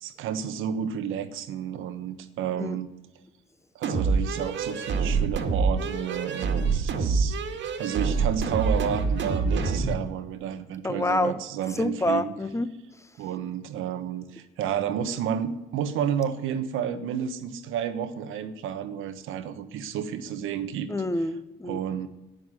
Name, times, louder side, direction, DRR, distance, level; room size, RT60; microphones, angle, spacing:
voice 1, 0.0-2.9 3.7-12.3 13.2-20.9 21.6-22.1, right 8 dB, 90° right, 10 dB, 1.3 m, -31 dB
sound 1, 3.8-10.0, right 4 dB, 65° right, 2.0 m, -26 dB
voice 2, 10.8-11.4 11.8-12.7 20.9-21.8, left 1 dB, 15° left, 13 dB, 1.0 m, -27 dB
11.0 x 9.5 x 9.8 m, 0.99 s
cardioid pair, 90°, 20 cm